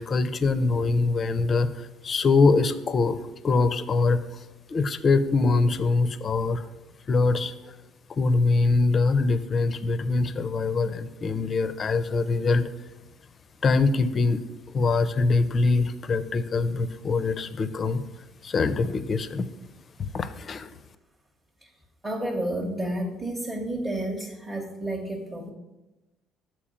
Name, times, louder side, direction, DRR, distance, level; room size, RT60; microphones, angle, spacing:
voice 1, 0.0-3.2 3.4-4.2 4.7-6.7 7.1-7.5 8.1-12.7 13.6-14.4 14.7-18.0 18.4-19.5 20.0-20.7, left 3 dB, 30° left, 13 dB, 0.4 m, -23 dB
voice 2, 22.0-25.5, right 1 dB, 15° right, -2 dB, 0.8 m, -31 dB
7.2 x 4.6 x 5.0 m, 1.0 s
cardioid pair, 140°, 0 cm